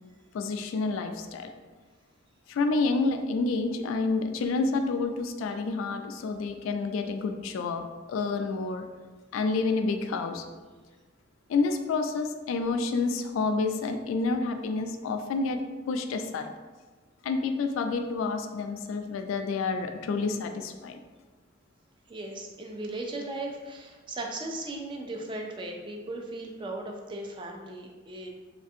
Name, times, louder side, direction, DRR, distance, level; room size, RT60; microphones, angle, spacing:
voice 1, 0.3-1.5 2.5-8.9 9.3-10.4 11.5-15.6 15.9-16.5 17.2-21.0, left 3 dB, 90° left, 6 dB, 0.3 m, -29 dB
voice 2, 22.1-28.3, right 2 dB, 25° right, 1 dB, 0.3 m, -37 dB
3.2 x 2.4 x 2.6 m, 1.3 s
head